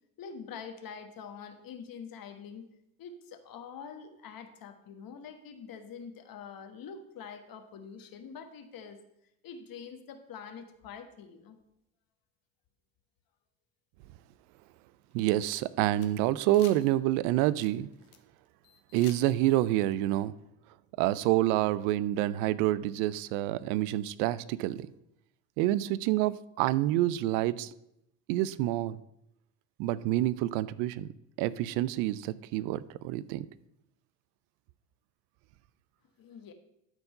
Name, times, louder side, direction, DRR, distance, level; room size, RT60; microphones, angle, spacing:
voice 1, 0.2-2.7 3.0-9.0 9.4-11.6 36.2-36.5, left 6 dB, 45° left, 8 dB, 1.4 m, -45 dB
sound 1, 15.1-16.1 16.5-16.9 17.2-18.2 18.6-19.6, left 10 dB, 85° left, 1.1 m, -52 dB
voice 2, 15.1-17.9 18.9-20.3 21.0-24.9 25.6-27.7 28.3-29.0 29.8-31.1 31.4-33.5, right 15 dB, 70° right, 18 dB, 0.6 m, -28 dB
12.0 x 4.5 x 5.4 m, 0.80 s
hypercardioid pair, 80°, 46 cm